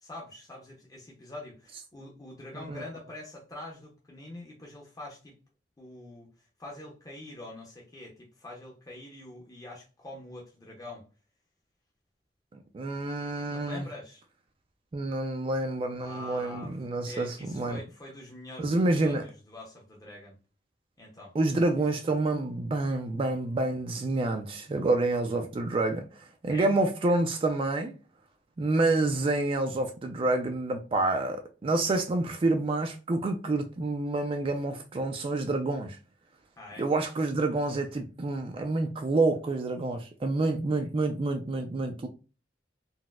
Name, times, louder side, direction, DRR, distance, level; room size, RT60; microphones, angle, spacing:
voice 1, 0.0-5.4 5.8-6.3 6.6-11.0 13.5-14.2 16.0-20.4 21.0-21.3 26.5-26.7 28.9-29.1 36.6-36.9, left 1 dB, 20° left, 0.6 m, -45 dB
voice 2, 12.7-13.9 14.9-17.8 18.6-19.2 21.3-27.9 28.6-36.0 36.8-42.1, right 2 dB, 30° right, 0.3 m, -28 dB
4.0 x 2.0 x 2.3 m
head